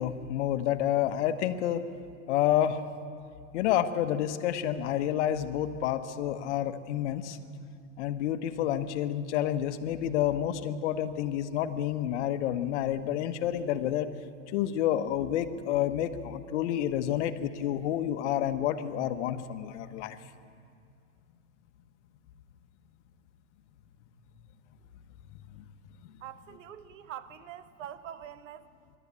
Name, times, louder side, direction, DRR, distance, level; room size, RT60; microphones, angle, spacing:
voice 1, 0.0-1.8 2.3-2.8 3.5-7.4 8.0-14.1 14.5-20.2 25.5-25.6, left 11 dB, 65° left, 9 dB, 1.3 m, -29 dB
voice 2, 26.2-28.7, right 10 dB, 80° right, 12 dB, 1.1 m, -44 dB
24.0 x 12.5 x 8.8 m, 2.3 s
supercardioid pair, 135°, 38 cm